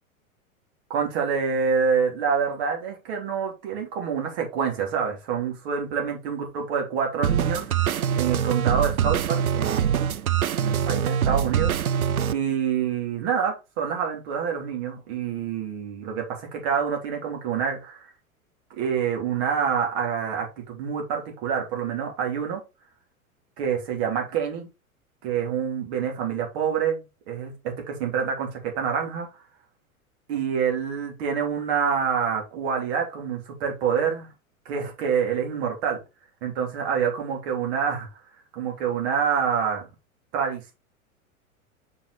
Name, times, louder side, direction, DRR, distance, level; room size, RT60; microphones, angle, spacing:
voice 1, 0.9-7.7 8.1-10.1 10.6-11.7 12.3-18.1 18.7-22.6 23.6-24.7 25.2-29.3 30.3-34.3 34.6-36.0 36.4-38.1 38.5-39.9 40.3-40.7, right 7 dB, 45° right, 2.9 m, -27 dB
sound 1, 7.2-12.3, right 8 dB, 80° right, 0.6 m, -24 dB
5.3 x 5.2 x 4.1 m
figure-of-eight pair, 95°, 43 cm